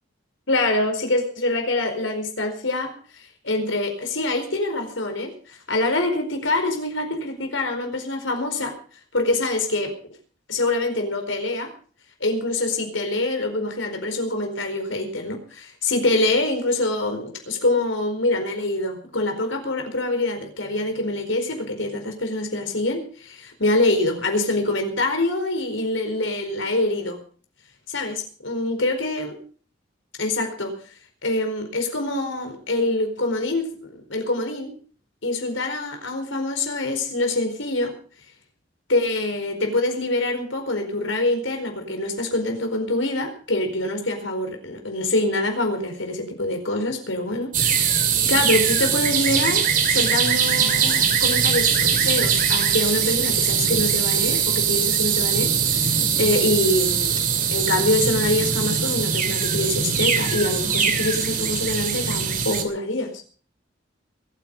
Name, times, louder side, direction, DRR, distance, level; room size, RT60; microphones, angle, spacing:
voice 1, 0.5-8.7 9.1-9.9 10.5-11.7 12.2-27.2 27.9-29.4 30.2-30.7 31.2-34.7 35.2-37.9 38.9-63.2, left 2 dB, 85° left, 5 dB, 4.6 m, -25 dB
sound 1, 47.5-62.6, right 7 dB, 45° right, 2.6 m, -21 dB
22.0 x 9.5 x 5.5 m, 0.43 s
head